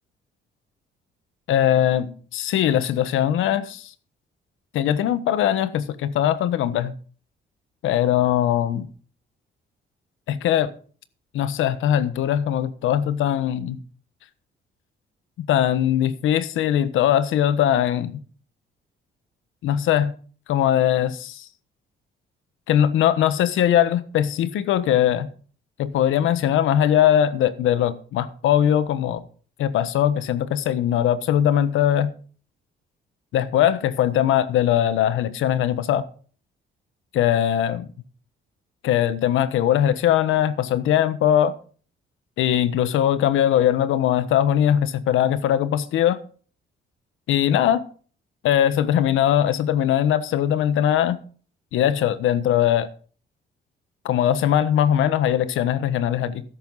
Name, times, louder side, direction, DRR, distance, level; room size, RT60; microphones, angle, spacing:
voice 1, 1.5-3.9 4.7-6.9 7.8-8.9 10.3-10.7 11.3-13.8 15.5-18.2 19.6-20.1 20.5-21.5 22.7-25.3 25.8-29.2 29.6-32.1 33.3-36.0 37.1-37.8 38.8-41.5 42.4-46.2 47.3-47.8 48.4-51.2 51.7-52.9 54.0-56.4, left 10 dB, 85° left, 1.2 m, -20 dB
13.0 x 11.0 x 4.0 m
cardioid pair, 90°, 20 cm